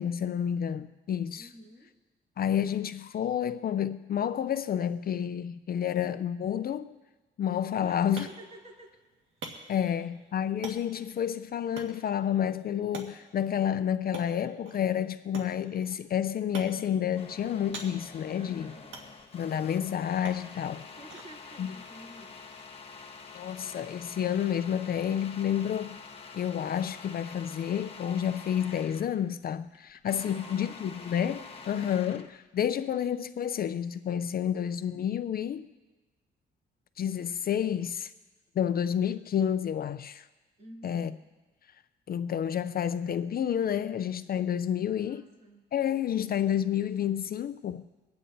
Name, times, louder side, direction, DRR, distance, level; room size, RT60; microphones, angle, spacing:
voice 1, 0.0-1.5 2.4-6.9 7.4-8.3 9.7-18.7 19.3-20.9 21.6-21.8 23.3-26.0 26.3-35.7 37.0-38.1 38.6-40.3 40.8-41.1 42.1-45.3 45.7-47.9, left 9 dB, 50° left, 0.5 m, -30 dB
voice 2, 1.4-1.9 7.8-8.9 9.6-10.0 18.3-18.9 21.0-22.6 30.1-31.9 40.6-41.2 44.9-45.6, right 1 dB, 35° right, 3.2 m, -51 dB
sound 1, 7.6-23.2, right 3 dB, 75° right, 1.7 m, -49 dB
sound 2, 17.2-29.2 29.5-32.4, left 4 dB, 30° left, 1.2 m, -47 dB
25.5 x 9.3 x 2.7 m
cardioid pair, 90°, 20 cm